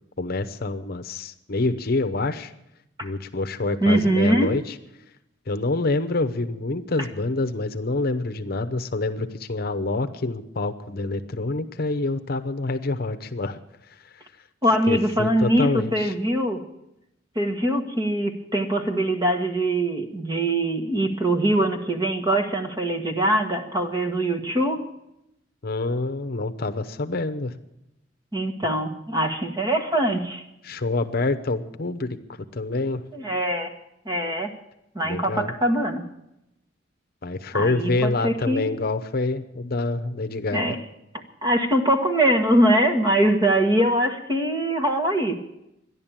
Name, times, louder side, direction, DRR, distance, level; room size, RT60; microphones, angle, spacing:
voice 1, 0.2-2.5 3.0-4.7 5.5-13.6 14.1-14.2 14.9-16.1 25.6-27.5 30.6-32.2 32.5-33.0 35.0-35.5 37.2-40.7, left 2 dB, 55° left, 8 dB, 0.8 m, -26 dB
voice 2, 3.8-4.5 14.6-16.6 17.3-24.8 28.3-30.4 33.1-33.7 34.0-34.5 34.9-36.0 37.5-38.7 40.5-40.8 41.4-45.4, right 1 dB, 20° right, 5 dB, 1.5 m, -22 dB
12.5 x 11.0 x 8.9 m, 0.84 s
head